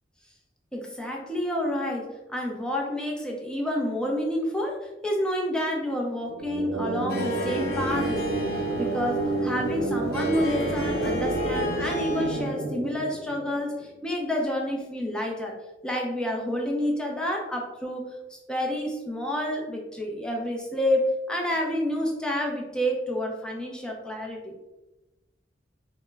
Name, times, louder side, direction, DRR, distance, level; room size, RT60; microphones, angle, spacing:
voice 1, 0.7-15.5 15.8-24.6, left 1 dB, 5° left, -1 dB, 0.5 m, -29 dB
sound 1, 6.2-13.9, right 2 dB, 85° right, 0.4 m, -30 dB
Harp, 7.1-12.6, left 1 dB, 60° left, 0.9 m, -33 dB
3.5 x 2.1 x 3.3 m, 1.0 s
head